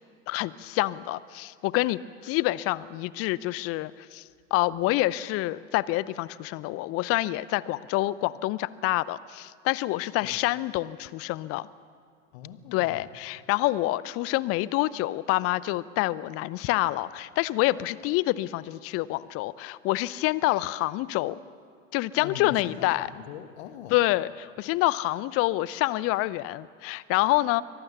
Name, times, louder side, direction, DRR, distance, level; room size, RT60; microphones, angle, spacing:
voice 1, 0.3-4.2 4.5-11.7 12.7-21.4 21.9-23.1 23.9-27.6, left 18 dB, 40° left, 19 dB, 0.7 m, -27 dB
voice 2, 12.3-13.1 22.2-24.0, left 9 dB, 55° left, 8 dB, 1.9 m, -41 dB
24.0 x 18.5 x 6.9 m, 2.2 s
figure-of-eight pair, 80°, 38 cm